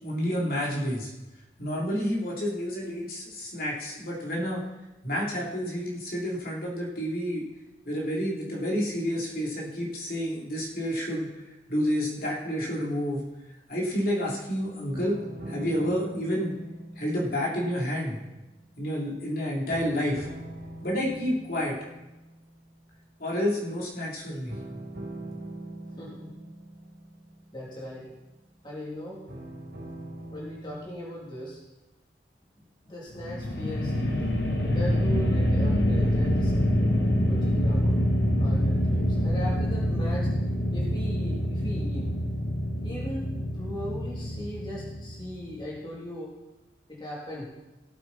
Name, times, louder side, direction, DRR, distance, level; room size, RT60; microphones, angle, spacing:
voice 1, 0.0-1.1 1.6-4.6 5.0-7.4 7.8-11.3 11.7-13.2 13.7-15.2 15.5-16.5 17.0-18.2 18.8-20.3 20.8-21.8 23.2-24.6, equal, 50° left, -4 dB, 3.4 m, -29 dB
sound 1, 14.9-19.3 19.7-23.0 24.5-28.5 29.3-31.5, right 1 dB, 65° right, 2.9 m, -42 dB
voice 2, 26.0-26.3 27.5-28.1 28.6-29.2 30.3-31.6 32.5-36.5 37.3-37.9 38.4-40.3 40.7-42.2 42.8-43.3 43.5-46.3 46.9-47.5, equal, 25° left, -5 dB, 3.0 m, -38 dB
sound 2, 33.1-45.4, equal, 70° left, 1.6 m, -26 dB
17.5 x 8.5 x 4.2 m, 1.0 s
head